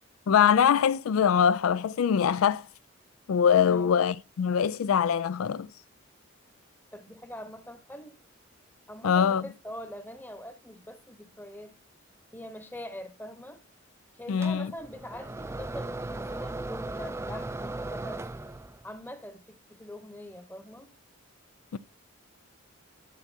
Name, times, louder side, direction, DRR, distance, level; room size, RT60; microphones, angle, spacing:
voice 1, 0.3-2.7 3.3-5.7 9.0-9.4 14.3-14.7 21.7-21.8, left 7 dB, 80° left, 0.4 m, -23 dB
voice 2, 3.6-3.9 6.9-8.2 8.9-11.7 12.3-13.6 14.1-18.3 18.8-20.9, equal, 10° left, 0.9 m, -43 dB
sound 1, 14.4-18.9, right 2 dB, 15° right, 0.3 m, -37 dB
12.5 x 7.1 x 2.7 m
head